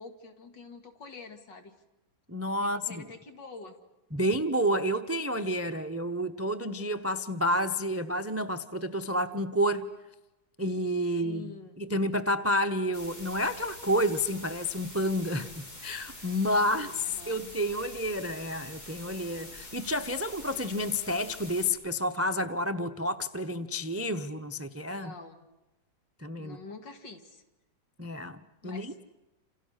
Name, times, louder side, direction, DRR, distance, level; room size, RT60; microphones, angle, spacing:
voice 1, 0.0-1.8 2.6-3.8 11.1-11.8 16.7-17.5 24.9-25.5 26.4-27.4 28.6-29.0, left 4 dB, 70° left, 6 dB, 3.0 m, -47 dB
voice 2, 2.3-3.0 4.1-9.9 10.6-11.5 11.8-25.1 26.2-26.6 28.0-29.0, equal, 20° right, 11 dB, 0.4 m, -30 dB
sound 1, 12.9-21.7, left 1 dB, 55° left, 4.9 m, -46 dB
29.0 x 28.5 x 6.6 m, 1.0 s
omnidirectional pair, 2.0 m